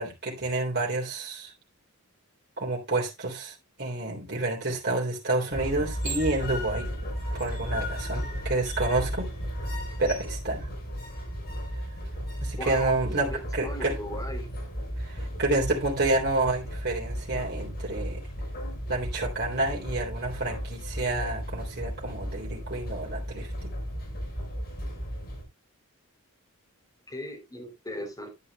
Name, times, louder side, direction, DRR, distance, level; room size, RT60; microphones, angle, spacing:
voice 1, 0.0-1.5 2.6-6.9 7.3-9.3 10.0-10.7 12.4-14.0 15.1-18.2 18.9-23.7, right 2 dB, 50° right, 3.5 m, -29 dB
sound 1, 5.5-25.4, equal, 50° left, 6.0 m, -34 dB
voice 2, 12.6-14.5 27.1-28.3, left 1 dB, 15° left, 3.1 m, -38 dB
11.5 x 9.7 x 2.3 m
head